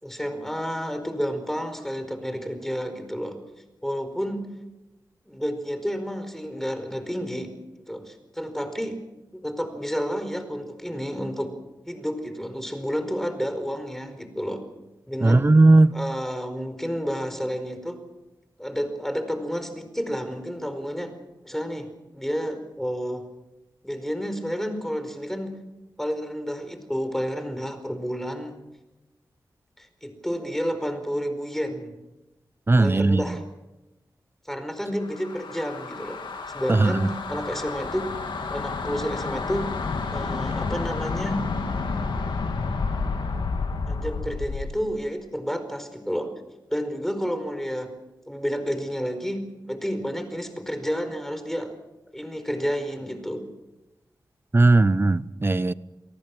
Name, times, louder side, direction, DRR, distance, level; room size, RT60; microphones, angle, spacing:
voice 1, 0.0-3.4 3.8-4.5 5.2-7.5 7.9-9.0 9.3-11.5 11.9-14.6 15.1-15.5 15.9-18.0 18.6-21.1 21.4-21.9 22.1-23.2 23.8-25.5 26.0-28.6 29.8-31.9 32.8-33.4 34.5-36.2 36.5-38.1 38.5-39.7 40.1-41.4 43.9-46.3 46.7-47.9 48.3-51.8 52.1-53.4, equal, 5° left, 4.8 m, -30 dB
voice 2, 15.2-15.9 32.7-33.3 36.7-37.0 54.5-55.7, right 2 dB, 30° right, 0.9 m, -17 dB
sound 1, 35.0-44.8, left 4 dB, 85° left, 2.6 m, -30 dB
29.0 x 19.0 x 6.2 m
cardioid pair, 60°, 8 cm